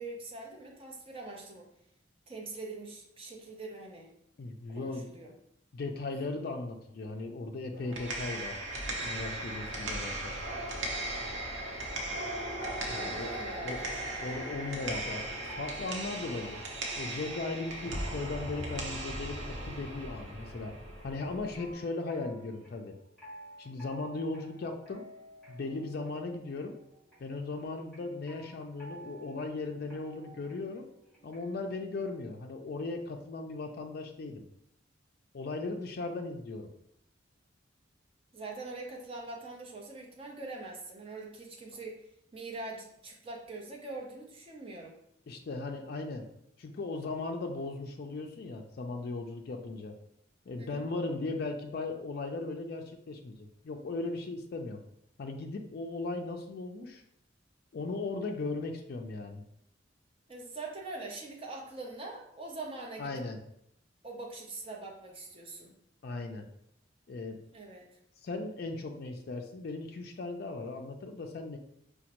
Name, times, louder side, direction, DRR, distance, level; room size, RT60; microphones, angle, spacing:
voice 1, 0.0-1.7 2.3-4.1 4.7-5.3 12.9-14.3 38.3-42.0 42.3-45.0 50.6-50.9 60.3-63.1 64.0-65.7 67.5-67.9, right 3 dB, 30° right, 0 dB, 0.6 m, -43 dB
voice 2, 4.4-5.1 5.7-8.6 9.0-10.4 12.9-13.3 13.6-13.8 14.2-16.6 17.0-20.8 21.0-23.0 23.6-25.1 25.5-26.8 27.2-30.9 31.2-34.4 35.3-36.7 45.3-46.3 46.6-50.0 50.5-54.8 55.2-57.0 57.7-59.4 63.0-63.4 66.0-66.5 67.1-67.4 68.2-71.6, left 3 dB, 50° left, 4 dB, 0.4 m, -37 dB
sound 1, 7.7-21.7, right 1 dB, 75° right, 0.7 m, -37 dB
sound 2, 14.0-31.6, right 2 dB, 10° left, 1.5 m, -54 dB
5.0 x 2.1 x 2.9 m, 0.74 s
head